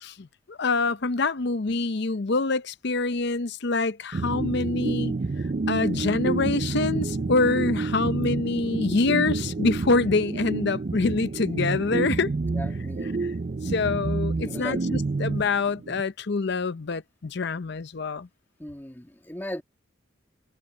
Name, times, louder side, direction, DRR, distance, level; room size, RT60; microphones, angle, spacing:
voice 1, 0.0-5.1 5.7-12.3 13.2-13.3 13.6-18.3, left 3 dB, 60° left, 0.6 m, -26 dB
sound 1, 4.1-16.0, right 3 dB, 40° right, 0.5 m, -29 dB
voice 2, 12.5-13.1 14.4-14.8 18.6-19.6, left 1 dB, 10° left, 1.8 m, -37 dB
head